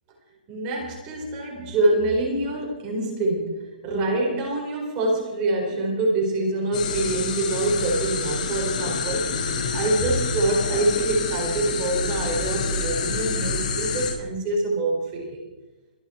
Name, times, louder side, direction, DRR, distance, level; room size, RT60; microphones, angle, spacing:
voice 1, 0.5-15.4, right 2 dB, 20° right, -2 dB, 4.3 m, -25 dB
sound 1, 6.7-14.1, left 4 dB, 60° left, 5.8 m, -27 dB
25.0 x 9.2 x 4.4 m, 1.1 s
hypercardioid pair, 170°, 5 cm